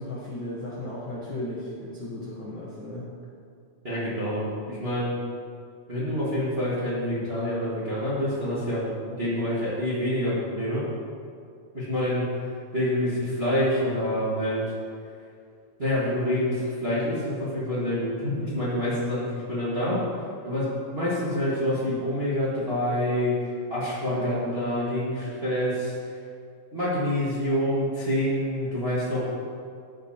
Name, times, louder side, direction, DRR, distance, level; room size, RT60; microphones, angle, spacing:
voice 1, 0.0-3.1 24.0-24.4, left 1 dB, 80° left, -6 dB, 1.1 m, -35 dB
voice 2, 3.8-5.2 5.9-10.8 11.7-12.2 12.7-14.6 15.8-20.0 20.4-23.3 23.7-25.9 26.7-29.2, left 1 dB, 55° right, -10 dB, 0.6 m, -27 dB
14.5 x 5.1 x 2.8 m, 2.3 s
omnidirectional pair, 4.1 m